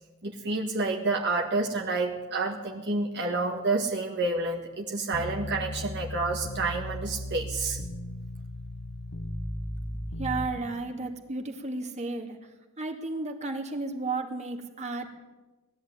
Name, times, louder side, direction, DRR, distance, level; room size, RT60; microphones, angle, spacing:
voice 1, 0.2-7.8, right 3 dB, 55° right, 0 dB, 1.9 m, -29 dB
sound 1, 5.1-10.5, left 1 dB, 65° left, 1.3 m, -36 dB
voice 2, 10.2-12.5 12.8-15.1, right 3 dB, 35° right, 2 dB, 2.4 m, -33 dB
20.0 x 14.0 x 9.6 m, 1.2 s
head